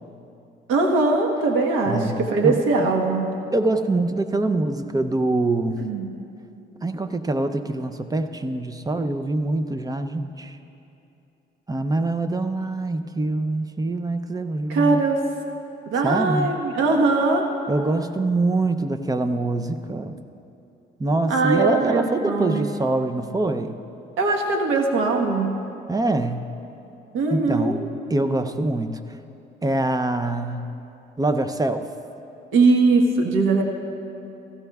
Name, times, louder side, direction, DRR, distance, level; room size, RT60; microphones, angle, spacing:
voice 1, 0.7-3.4 5.8-6.1 14.7-15.2 15.9-17.5 21.3-22.7 24.2-25.6 27.1-27.8 32.5-33.6, right 3 dB, 90° right, 2 dB, 1.3 m, -21 dB
voice 2, 1.9-2.2 2.4-2.6 3.5-5.8 6.8-10.6 11.7-15.0 16.0-16.5 17.7-20.1 21.0-23.8 25.9-26.4 27.3-27.8 28.1-29.0 29.6-30.7 31.2-31.9, right 2 dB, 20° right, 9 dB, 0.6 m, -24 dB
16.5 x 15.5 x 2.4 m, 2.8 s
cardioid pair, 90°, 20 cm